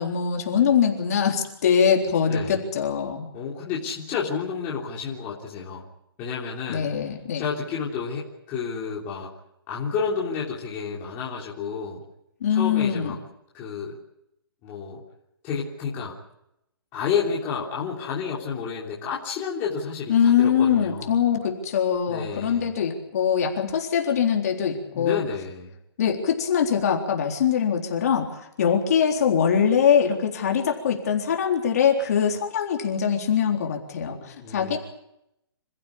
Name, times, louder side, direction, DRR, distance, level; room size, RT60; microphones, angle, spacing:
voice 1, 0.0-3.3 6.7-7.4 12.4-13.2 20.1-25.2 26.0-34.8, left 7 dB, 40° left, 1 dB, 3.8 m, -23 dB
voice 2, 2.3-2.6 3.3-5.8 6.2-6.9 7.3-9.3 9.7-12.0 12.5-13.2 13.5-14.0 14.6-15.0 15.4-16.1 16.9-21.1 22.1-22.7 24.9-25.7 34.4-34.8, left 6 dB, 15° left, -5 dB, 3.4 m, -30 dB
27.5 x 15.0 x 8.6 m, 0.82 s
hypercardioid pair, 170°, 13 cm